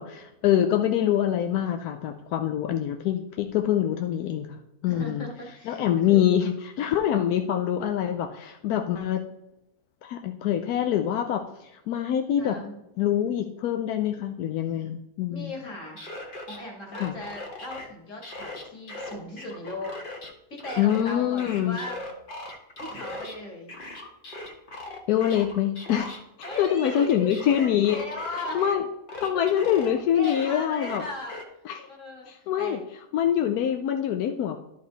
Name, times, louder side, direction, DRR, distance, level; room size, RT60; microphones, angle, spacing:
voice 1, 0.0-5.2 5.7-9.2 10.0-12.6 13.0-15.5 17.0-17.1 20.8-21.8 25.1-26.2 26.6-28.0 28.5-28.8 29.2-31.0 31.7-31.8 32.3-32.8 33.1-34.6, left 10 dB, 85° left, 5 dB, 1.1 m, -25 dB
voice 2, 4.9-6.3 12.4-12.8 14.7-14.9 15.3-16.2 16.5-20.2 20.5-22.0 22.8-23.7 26.4-28.6 30.1-31.3 31.9-32.8, left 2 dB, 55° left, 0 dB, 2.4 m, -38 dB
sound 1, 15.7-16.6 16.9-17.9 18.2-20.3 20.6-23.4 23.7-28.7 29.1-31.4, left 2 dB, 40° left, 1.2 m, -39 dB
11.5 x 5.2 x 4.0 m, 0.87 s
omnidirectional pair, 1.6 m